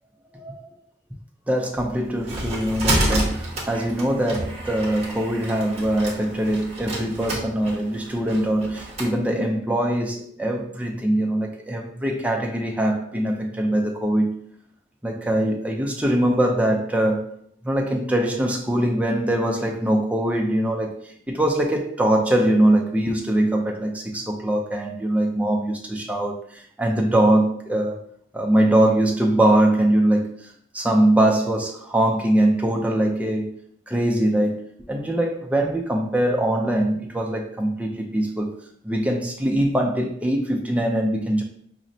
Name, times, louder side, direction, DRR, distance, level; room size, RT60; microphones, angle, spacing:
voice 1, 0.3-0.6 1.5-14.4 15.0-17.3 17.6-28.0 28.3-33.5 33.9-38.5 38.8-41.4, right 1 dB, 10° right, 0 dB, 0.4 m, -22 dB
sound 1, 1.8-9.1, right 1 dB, 35° right, 0.7 m, -29 dB
4.9 x 2.1 x 2.6 m, 0.65 s
head